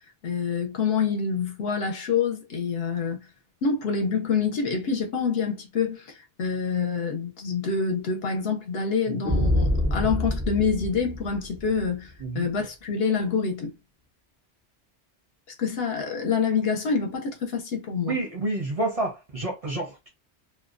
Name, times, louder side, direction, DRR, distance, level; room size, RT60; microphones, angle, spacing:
voice 1, 0.2-3.3 3.6-13.7 15.6-18.2, left 5 dB, 65° left, 0.8 m, -26 dB
sound 1, 9.2-11.9, left 1 dB, 15° left, 0.4 m, -26 dB
voice 2, 18.1-20.1, right 2 dB, 40° right, 0.6 m, -29 dB
2.5 x 2.1 x 2.4 m
omnidirectional pair, 1.2 m